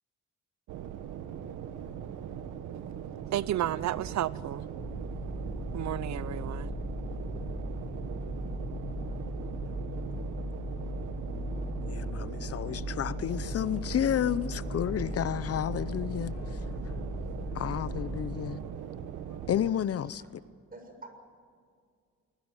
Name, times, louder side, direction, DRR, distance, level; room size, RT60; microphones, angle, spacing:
sound 1, 0.7-19.7, right 9 dB, 85° right, 1.5 m, -40 dB
voice 1, 3.2-4.6 5.7-6.7, right 12 dB, 65° right, 0.8 m, -32 dB
sound 2, 4.8-18.5, left 1 dB, 15° left, 2.1 m, -38 dB
voice 2, 11.9-16.6 17.5-18.6 19.5-20.2, left 10 dB, 50° left, 0.8 m, -31 dB
sound 3, 13.3-20.4, left 2 dB, 80° left, 4.1 m, -57 dB
voice 3, 20.7-21.1, right 2 dB, 30° right, 6.9 m, -48 dB
22.5 x 20.0 x 9.8 m
cardioid pair, 90°, 30 cm